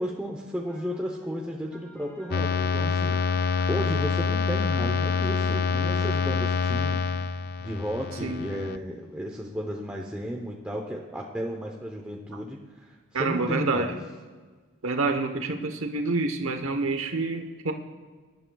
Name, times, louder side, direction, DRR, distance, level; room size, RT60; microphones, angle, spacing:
voice 1, 0.0-13.9, equal, 5° right, -1 dB, 0.8 m, -34 dB
sound 1, 0.6-6.3, left 2 dB, 10° left, 3.1 m, -45 dB
sound 2, 2.3-8.8, left 5 dB, 45° left, 0.4 m, -26 dB
voice 2, 13.1-13.9 14.8-17.7, right 3 dB, 75° right, 6 dB, 1.0 m, -27 dB
23.0 x 11.5 x 2.3 m, 1.4 s
head